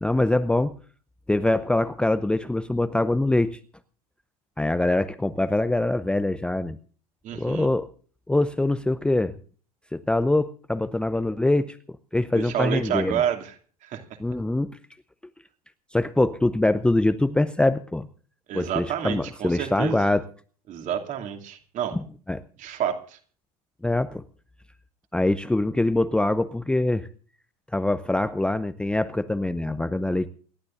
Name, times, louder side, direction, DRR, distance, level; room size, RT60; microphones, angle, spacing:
voice 1, 0.0-0.7 1.3-3.6 4.6-6.8 7.3-7.9 8.3-9.3 9.9-11.8 12.1-13.2 14.2-14.7 15.9-18.1 18.5-20.3 21.9-22.4 23.8-24.2 25.1-27.1 27.7-30.3, left 2 dB, 5° left, 12 dB, 0.7 m, -24 dB
voice 2, 7.2-7.7 12.3-13.5 13.8-14.0 18.5-20.0 20.7-22.0 22.6-23.2, right 10 dB, 40° right, 6 dB, 2.6 m, -29 dB
28.5 x 12.0 x 2.6 m, 0.43 s
figure-of-eight pair, 80°, 19 cm